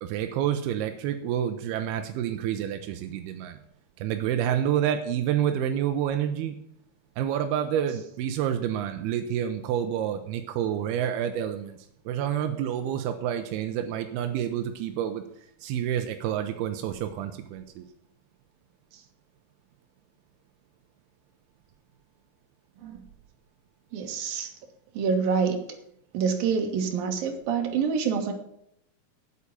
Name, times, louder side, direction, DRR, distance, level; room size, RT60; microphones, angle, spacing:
voice 1, 0.0-3.6 4.0-6.6 7.2-11.8 12.1-15.2 15.6-17.8, right 10 dB, 90° right, 7 dB, 2.7 m, -28 dB
voice 2, 23.9-24.5 24.9-25.6 26.1-28.3, right 6 dB, 70° right, 4 dB, 3.2 m, -27 dB
8.5 x 8.4 x 8.9 m, 0.74 s
omnidirectional pair, 4.5 m